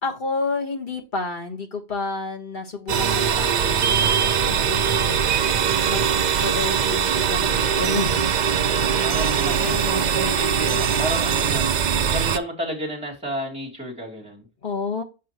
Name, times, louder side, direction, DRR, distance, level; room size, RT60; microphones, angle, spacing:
voice 1, 0.0-5.2 5.8-8.3 9.5-9.9 14.6-15.0, left 3 dB, 50° left, 1.5 m, -30 dB
sound 1, 2.9-12.4, right 7 dB, 50° right, 0.6 m, -21 dB
voice 2, 9.0-11.7 12.1-14.5, right 1 dB, 5° right, 2.6 m, -31 dB
7.5 x 5.5 x 3.0 m
omnidirectional pair, 1.1 m